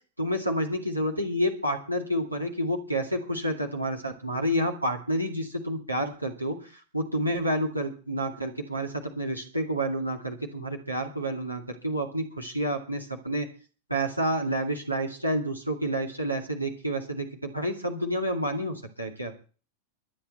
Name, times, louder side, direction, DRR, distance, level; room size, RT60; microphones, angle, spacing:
voice 1, 0.2-13.5 13.9-19.3, equal, 90° right, 2 dB, 2.3 m, -29 dB
24.0 x 8.3 x 4.3 m, 0.37 s
figure-of-eight pair, 90°, 0 cm